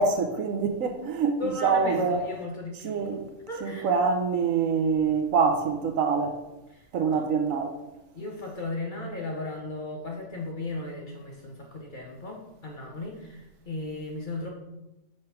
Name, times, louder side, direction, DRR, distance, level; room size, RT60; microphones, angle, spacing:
voice 1, 0.0-2.3 2.8-3.3 3.6-6.4 6.9-7.8, right 5 dB, 70° right, 1.0 m, -25 dB
voice 2, 1.4-3.0 3.5-3.9 6.7-6.9 7.1-7.2 8.1-14.5, left 2 dB, 40° left, 0.8 m, -36 dB
5.8 x 3.2 x 5.6 m
omnidirectional pair, 1.6 m